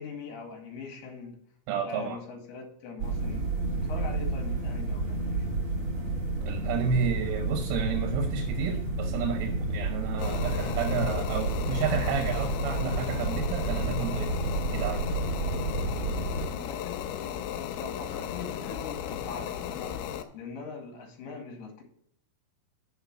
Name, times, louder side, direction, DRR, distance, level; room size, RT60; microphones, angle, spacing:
voice 1, 0.0-1.4 1.8-3.5 3.9-5.5 16.4-21.8, left 4 dB, 60° left, 2 dB, 3.7 m, -42 dB
voice 2, 1.7-2.2 6.4-14.4 14.7-15.0, right 5 dB, 80° right, 5 dB, 3.4 m, -31 dB
sound 1, 3.0-16.5, right 2 dB, 60° right, 1.8 m, -30 dB
sound 2, 10.2-20.2, left 10 dB, 90° left, 3.3 m, -36 dB
7.3 x 5.7 x 7.2 m, 0.70 s
omnidirectional pair, 5.7 m